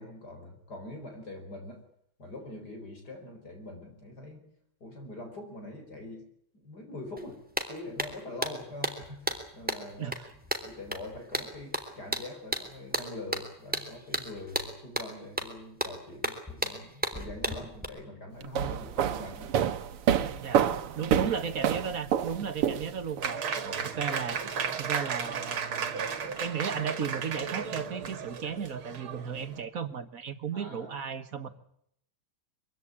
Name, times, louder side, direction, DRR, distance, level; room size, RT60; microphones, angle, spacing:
voice 1, 0.0-1.8 2.2-4.5 4.8-6.3 6.5-7.4 7.7-10.1 10.6-19.5 20.9-21.1 23.6-23.9 30.5-30.9, left 2 dB, 45° left, 4 dB, 5.2 m, -43 dB
sound 1, 7.2-7.3 7.6-17.8, equal, 5° right, 3.2 m, -34 dB
voice 2, 10.0-10.3 20.4-20.6 20.9-24.4 24.8-26.1 26.4-31.5, right 7 dB, 45° right, 11 dB, 1.7 m, -35 dB
sound 2, 18.4-23.2, right 9 dB, 90° right, 2.1 m, -28 dB
Applause, 23.2-29.6, right 6 dB, 70° right, 2.7 m, -34 dB
24.0 x 16.5 x 9.9 m, 0.71 s
omnidirectional pair, 2.4 m